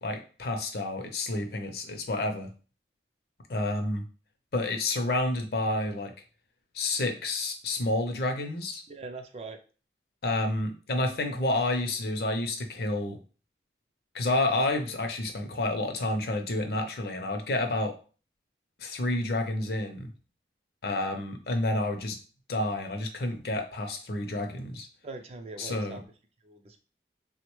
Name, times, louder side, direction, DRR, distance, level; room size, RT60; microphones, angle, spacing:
voice 1, 0.0-2.5 3.5-4.0 4.5-6.1 6.7-8.8 10.2-13.2 14.1-17.9 18.8-20.1 20.8-22.2 22.5-24.9 25.6-26.0, left 2 dB, 60° left, 5 dB, 0.5 m, -29 dB
voice 2, 8.9-9.6 25.0-26.0 26.4-26.8, right 3 dB, 35° right, 6 dB, 0.3 m, -41 dB
3.5 x 2.1 x 3.0 m, 0.38 s
head